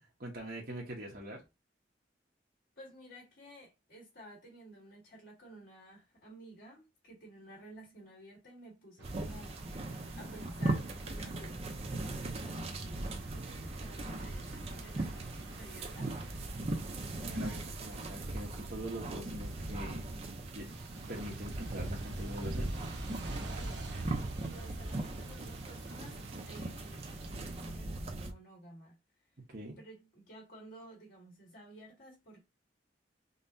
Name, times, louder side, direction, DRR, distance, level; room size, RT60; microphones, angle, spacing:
voice 1, 0.0-1.4 17.2-20.1 20.5-20.8 21.1-22.7 29.5-29.8, right 1 dB, 55° right, 1.1 m, -43 dB
voice 2, 2.8-16.1 23.5-29.0 29.8-32.4, right 1 dB, 70° left, 1.7 m, -53 dB
sound 1, 9.0-28.3, right 2 dB, 35° right, 0.6 m, -39 dB
sound 2, 9.0-27.8, right 3 dB, 75° right, 0.8 m, -49 dB
5.3 x 2.2 x 2.6 m
head